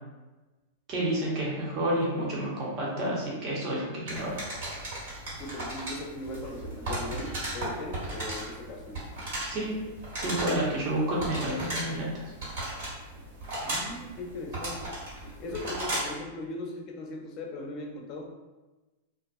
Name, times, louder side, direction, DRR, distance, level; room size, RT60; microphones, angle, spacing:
voice 1, 0.9-4.4 9.5-9.7 10.2-12.3, right 1 dB, 45° right, -5 dB, 0.8 m, -30 dB
sound 1, 4.1-16.2, right 1 dB, 65° right, 1.5 m, -36 dB
voice 2, 5.4-9.1 13.6-15.0 15.4-18.4, left 2 dB, 40° left, 2 dB, 0.5 m, -39 dB
2.4 x 2.3 x 2.4 m, 1.1 s
hypercardioid pair, 110°, 0 cm